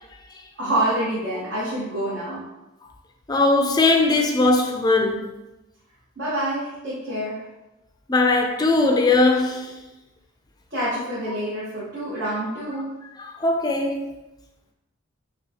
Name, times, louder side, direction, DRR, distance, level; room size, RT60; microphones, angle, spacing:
voice 1, 0.6-2.4 6.2-7.4 10.7-12.9, right 1 dB, 60° right, 1.2 m, -27 dB
voice 2, 3.3-5.3 8.1-9.8 13.2-14.1, left 2 dB, 20° left, 0.4 m, -20 dB
5.5 x 2.3 x 2.8 m
head